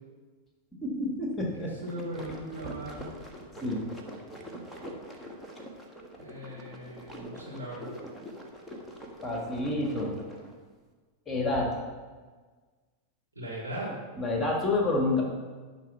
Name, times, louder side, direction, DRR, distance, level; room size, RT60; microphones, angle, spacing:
voice 1, 0.8-1.7 3.6-3.8 9.2-10.2 11.3-11.7 14.2-15.2, left 2 dB, 15° left, 0 dB, 1.7 m, -28 dB
voice 2, 1.5-3.2 6.2-7.9 13.3-14.0, right 1 dB, 90° right, -8 dB, 2.7 m, -39 dB
sound 1, 1.6-10.5, equal, ahead, 1.5 m, -44 dB
11.0 x 4.1 x 6.0 m, 1.4 s
figure-of-eight pair, 90°, 0 cm